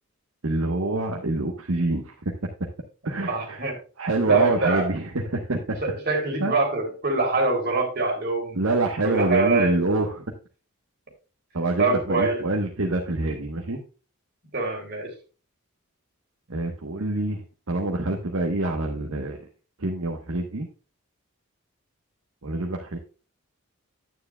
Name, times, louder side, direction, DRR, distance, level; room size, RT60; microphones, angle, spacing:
voice 1, 0.4-2.1 3.0-3.6 4.0-5.8 6.4-6.6 8.5-10.2 11.5-13.8 16.5-17.4 17.7-19.4 19.8-20.7 22.4-23.0, right 2 dB, 65° right, 2 dB, 1.0 m, -26 dB
voice 2, 3.3-3.8 4.3-4.9 5.8-8.6 9.0-9.8 11.8-12.4 14.5-15.1, right 3 dB, 45° right, 0 dB, 3.1 m, -24 dB
9.5 x 9.3 x 2.2 m, 0.35 s
head